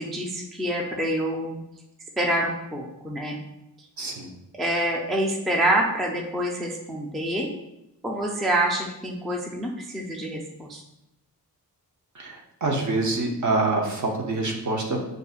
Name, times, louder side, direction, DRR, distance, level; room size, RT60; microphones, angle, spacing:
voice 1, 0.0-1.6 2.2-3.4 4.6-7.5 8.0-10.8, right 1 dB, ahead, -1 dB, 0.3 m, -26 dB
voice 2, 4.0-4.3 12.2-15.0, right 2 dB, 50° right, 1 dB, 0.7 m, -26 dB
6.4 x 2.6 x 2.4 m, 0.90 s
wide cardioid pair, 155°, 39 cm